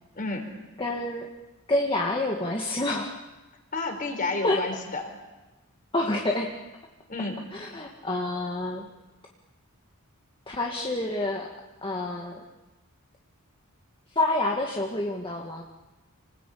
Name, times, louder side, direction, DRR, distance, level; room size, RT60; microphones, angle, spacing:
voice 1, 0.1-0.5 3.7-5.0 7.1-7.4, left 3 dB, 40° left, 4 dB, 4.5 m, -30 dB
voice 2, 0.8-1.3 1.7-3.2 4.4-4.7 5.9-6.6 7.5-8.9 10.5-11.5 11.8-12.4 14.2-15.6, left 2 dB, 25° left, 0 dB, 1.8 m, -28 dB
28.0 x 20.0 x 8.5 m, 1.1 s
head